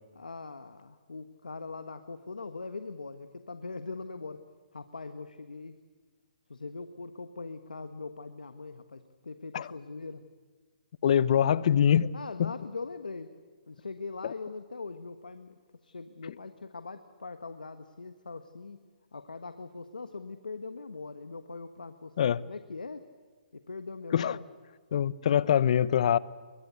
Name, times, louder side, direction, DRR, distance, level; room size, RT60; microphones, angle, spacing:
voice 1, 0.1-4.4 4.7-5.8 6.5-10.2 12.1-13.3 13.7-15.5 15.8-18.8 19.1-23.1 23.5-24.4, left 4 dB, 90° left, 9 dB, 1.5 m, -41 dB
voice 2, 11.0-12.1 12.4-12.5 14.2-14.3 22.2-22.4 24.1-24.4 24.9-26.2, left 9 dB, 55° left, 19 dB, 0.8 m, -24 dB
27.5 x 23.0 x 8.3 m, 1.4 s
hypercardioid pair, 140°, 4 cm